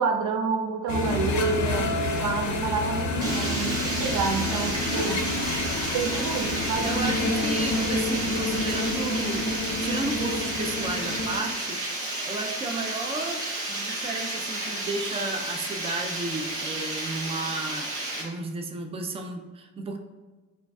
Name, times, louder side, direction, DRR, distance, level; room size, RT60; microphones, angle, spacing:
voice 1, 0.0-5.2 5.9-6.9, right 4 dB, 85° right, 5 dB, 0.5 m, -28 dB
sound 1, 0.9-11.4, left 2 dB, 75° left, 0.6 m, -28 dB
Water, 3.2-18.2, right 2 dB, 50° right, 1.4 m, -32 dB
voice 2, 6.8-9.5 9.8-13.4 13.7-20.0, right 2 dB, 20° right, 4 dB, 0.4 m, -33 dB
4.9 x 2.4 x 2.3 m, 1.3 s
cardioid pair, 90°, 30 cm